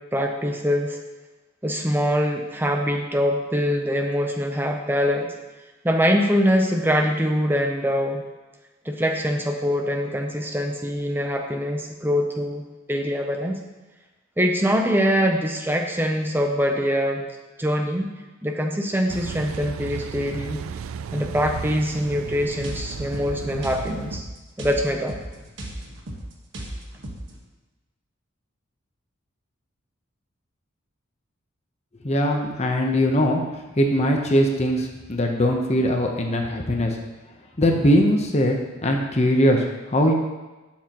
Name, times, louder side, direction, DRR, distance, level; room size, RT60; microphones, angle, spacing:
voice 1, 0.1-1.0 1.6-5.3 5.8-8.2 8.9-13.6 14.4-17.2 17.6-18.1 18.4-20.6 21.1-24.2 24.6-25.2, equal, 10° right, 3 dB, 0.6 m, -23 dB
Car passing by / Idling / Accelerating revving vroom, 19.1-24.2, right 6 dB, 85° right, 0.3 m, -34 dB
sound 1, 22.6-27.4, right 1 dB, 65° right, 1.4 m, -36 dB
voice 2, 31.9-37.0 37.6-40.1, equal, 35° left, 2 dB, 0.8 m, -21 dB
11.5 x 7.3 x 3.0 m, 1.2 s
head